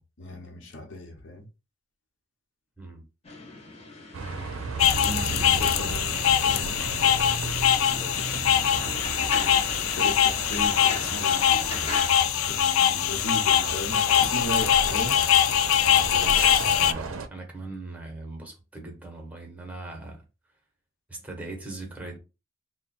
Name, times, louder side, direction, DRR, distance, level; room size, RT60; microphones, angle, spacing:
voice 1, 0.0-1.5 5.0-8.9 9.7-12.0 12.5-15.2, left 1 dB, 65° left, 1.0 m, -38 dB
sound 1, 3.2-12.1, left 3 dB, 30° left, 0.8 m, -39 dB
Bus, 4.1-17.3, right 4 dB, 80° right, 0.6 m, -35 dB
sound 2, 4.8-16.9, left 10 dB, 90° left, 0.4 m, -23 dB
voice 2, 4.8-6.0 15.8-20.2 21.1-22.2, right 2 dB, 5° right, 1.0 m, -40 dB
3.6 x 2.2 x 4.2 m
head